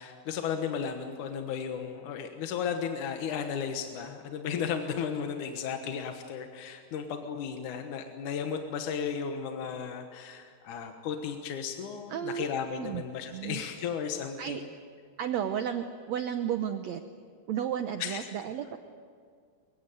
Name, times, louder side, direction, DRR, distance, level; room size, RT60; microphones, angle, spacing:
voice 1, 0.0-14.7 18.0-18.2, left 7 dB, 65° left, 5 dB, 2.4 m, -34 dB
voice 2, 12.1-12.5 12.8-13.6 14.4-14.6 15.2-17.0 17.5-18.8, right 9 dB, 80° right, 7 dB, 1.5 m, -33 dB
23.5 x 23.0 x 9.2 m, 2.1 s
omnidirectional pair, 4.4 m